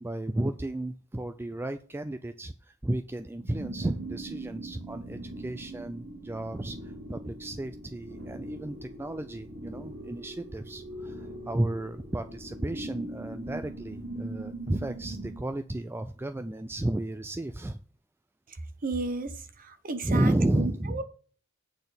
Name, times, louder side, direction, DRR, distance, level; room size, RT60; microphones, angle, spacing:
voice 1, 0.0-17.8 20.0-21.0, right 1 dB, 10° right, 0.3 m, -32 dB
sound 1, 3.4-15.4, right 2 dB, 80° right, 2.8 m, -41 dB
voice 2, 18.8-19.3 19.6-21.0, right 3 dB, 40° right, 0.9 m, -32 dB
8.7 x 4.1 x 6.9 m
head